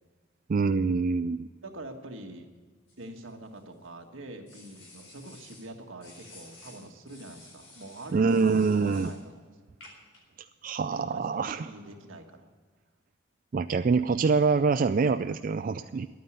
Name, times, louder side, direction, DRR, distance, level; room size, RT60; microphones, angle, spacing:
voice 1, 0.5-1.5 8.1-9.1 10.4-11.7 13.5-16.1, right 4 dB, 45° right, 9 dB, 0.3 m, -25 dB
voice 2, 1.6-2.5 3.0-9.5 10.9-12.5, right 2 dB, 80° right, 3 dB, 1.6 m, -44 dB
sound 1, 2.9-3.9 4.5-5.7 6.0-9.2 9.8-10.2, left 2 dB, 75° left, 4.3 m, -52 dB
11.0 x 9.4 x 8.1 m, 1.5 s
head